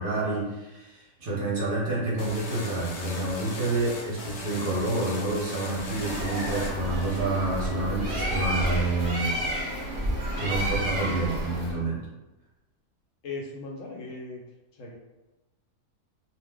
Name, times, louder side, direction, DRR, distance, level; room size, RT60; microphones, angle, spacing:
voice 1, 0.0-9.3 10.4-12.0, right 2 dB, 45° right, -5 dB, 0.8 m, -28 dB
sound 1, 2.2-7.6, left 2 dB, 85° left, 1.2 m, -39 dB
Bird, 5.7-11.8, right 1 dB, 75° right, 0.4 m, -31 dB
sound 2, 6.0-11.7, equal, 5° left, 0.6 m, -40 dB
voice 2, 11.0-11.4 13.2-14.4 14.7-15.0, left 3 dB, 70° left, -1 dB, 0.8 m, -38 dB
2.6 x 2.0 x 3.4 m, 1.0 s
omnidirectional pair, 1.6 m